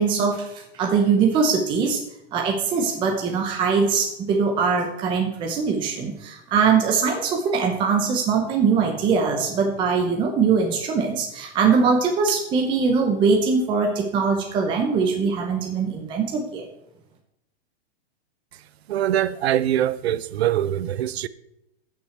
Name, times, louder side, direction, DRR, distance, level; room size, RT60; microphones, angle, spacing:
voice 1, 0.0-2.0 2.3-16.6, right 5 dB, 15° right, 0.8 m, -22 dB
voice 2, 18.9-21.3, right 11 dB, 70° right, 0.7 m, -23 dB
15.5 x 5.9 x 4.5 m
supercardioid pair, 165°, 32 cm